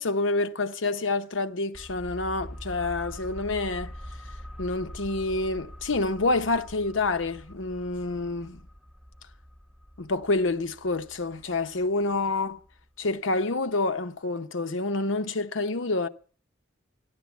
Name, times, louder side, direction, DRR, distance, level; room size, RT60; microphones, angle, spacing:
voice 1, 0.0-3.9 4.6-8.6 10.0-12.6 13.0-16.1, left 2 dB, 85° left, 1.0 m, -28 dB
sound 1, 1.7-13.1 13.4-13.5, equal, 5° right, 0.6 m, -44 dB
14.0 x 11.5 x 7.2 m
head